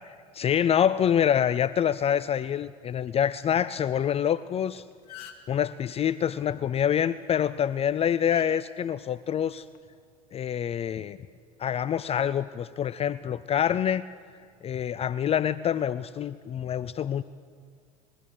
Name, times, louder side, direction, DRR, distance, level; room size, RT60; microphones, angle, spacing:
voice 1, 0.3-4.8 5.5-9.6 10.3-11.2 11.6-14.1 14.6-17.2, left 9 dB, 30° left, 17 dB, 0.6 m, -26 dB
sound 1, 4.6-4.7 4.9-5.6 7.2-7.4 8.3-8.5 9.5-9.8, left 9 dB, 55° left, 2.2 m, -45 dB
25.0 x 21.5 x 6.5 m, 2.1 s
hypercardioid pair, 80°, 19 cm